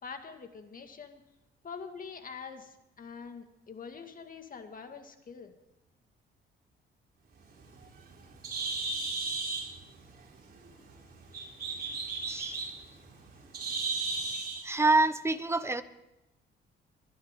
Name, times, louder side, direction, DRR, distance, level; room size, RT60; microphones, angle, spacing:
voice 1, 0.0-1.2 1.6-5.5, left 5 dB, 45° left, 6 dB, 2.0 m, -45 dB
Bird, 7.4-14.7, right 3 dB, 50° right, 3.9 m, -36 dB
voice 2, 12.3-12.6 14.6-15.8, right 2 dB, 15° right, 12 dB, 1.0 m, -26 dB
22.5 x 11.5 x 3.8 m, 0.94 s
cardioid pair, 90°, 20 cm